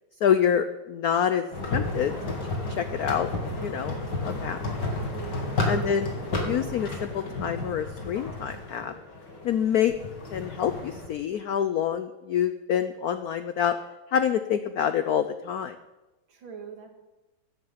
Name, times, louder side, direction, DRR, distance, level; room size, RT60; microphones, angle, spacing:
voice 1, 0.2-2.3 2.7-3.3 3.6-4.0 4.2-4.6 5.6-8.9 9.4-9.9 10.3-13.8 14.1-15.8, left 9 dB, 75° left, 10 dB, 0.8 m, -27 dB
sound 1, 1.5-11.1, left 2 dB, 55° left, 2.9 m, -32 dB
voice 2, 5.1-5.9 16.3-16.9, right 7 dB, 70° right, 4 dB, 2.5 m, -42 dB
15.5 x 10.5 x 5.8 m, 1.1 s
omnidirectional pair, 2.3 m